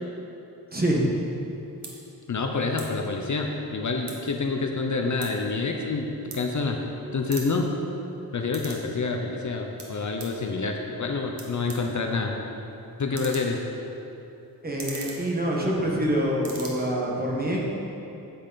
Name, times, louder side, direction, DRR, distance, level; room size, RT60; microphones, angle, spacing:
voice 1, 0.7-1.1 14.6-17.6, right 1 dB, 25° right, -3 dB, 1.4 m, -25 dB
sound 1, 1.3-1.4 1.8-1.9 2.7-2.9 3.2-4.4 4.7-6.9 7.2-8.9 9.2-10.4 11.0-11.1 11.3-16.0 16.3-16.7, right 4 dB, 85° right, 1.5 m, -42 dB
voice 2, 2.3-6.8 7.1-7.7 8.3-12.3 13.0-13.6, left 4 dB, 50° left, 2 dB, 0.7 m, -27 dB
10.0 x 8.6 x 4.0 m, 3.0 s
wide cardioid pair, 175°, 39 cm